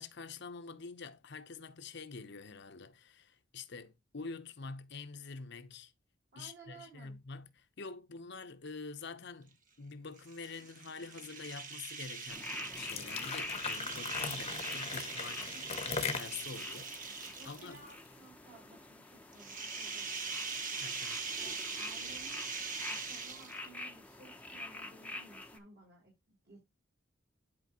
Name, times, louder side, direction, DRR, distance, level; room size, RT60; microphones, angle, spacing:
voice 1, 0.0-5.9 6.4-17.8 20.8-21.3, left 4 dB, 60° left, 0.9 m, -47 dB
voice 2, 6.3-7.2 17.4-20.5 21.4-22.6 22.9-26.6, right 3 dB, 60° right, 5.7 m, -57 dB
sound 1, 10.2-17.9 19.3-23.8, right 4 dB, 45° right, 1.2 m, -42 dB
sound 2, 12.3-25.6, left 2 dB, 5° left, 0.8 m, -46 dB
sound 3, 12.7-18.0, left 5 dB, 30° left, 1.0 m, -40 dB
11.0 x 4.5 x 3.0 m
head